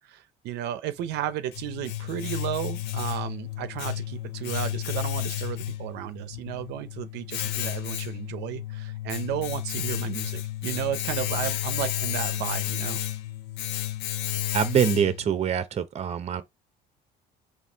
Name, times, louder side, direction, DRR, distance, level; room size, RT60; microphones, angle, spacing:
voice 1, 0.0-13.0, right 11 dB, 80° right, 0.6 m, -33 dB
Domestic sounds home sounds, 1.0-15.4, left 14 dB, 90° left, 0.5 m, -32 dB
voice 2, 14.5-16.4, right 8 dB, 40° right, 0.7 m, -24 dB
4.2 x 2.7 x 3.4 m
cardioid pair, 110°, 17 cm